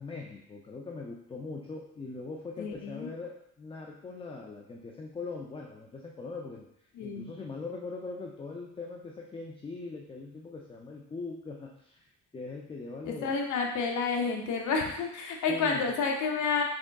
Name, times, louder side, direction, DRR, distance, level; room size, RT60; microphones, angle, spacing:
voice 1, 0.0-6.7 7.0-12.0 12.3-13.3 15.5-15.9, left 3 dB, 20° left, -1 dB, 0.4 m, -41 dB
voice 2, 2.6-3.1 6.9-7.2 13.0-16.6, left 5 dB, 75° left, 2 dB, 0.7 m, -30 dB
3.5 x 3.5 x 2.2 m, 0.75 s
cardioid pair, 90°, 30 cm